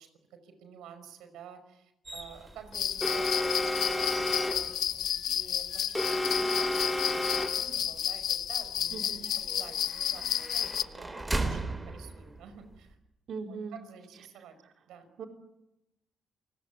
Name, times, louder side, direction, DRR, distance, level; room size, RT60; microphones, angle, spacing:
voice 1, 0.0-13.0 13.5-14.6 14.9-15.1, right 7 dB, 85° right, 9 dB, 5.5 m, -50 dB
sound 1, 2.1-12.9, right 2 dB, 15° right, 4.2 m, -41 dB
sound 2, 2.7-10.8, left 10 dB, 70° left, 0.9 m, -31 dB
Alarm, 3.0-4.8 5.9-7.7, left 1 dB, 10° left, 3.1 m, -31 dB
voice 2, 8.9-9.3 13.3-13.8 15.2-15.3, right 4 dB, 60° right, 4 dB, 4.1 m, -39 dB
28.5 x 19.0 x 9.6 m, 0.89 s
cardioid pair, 90°, 0 cm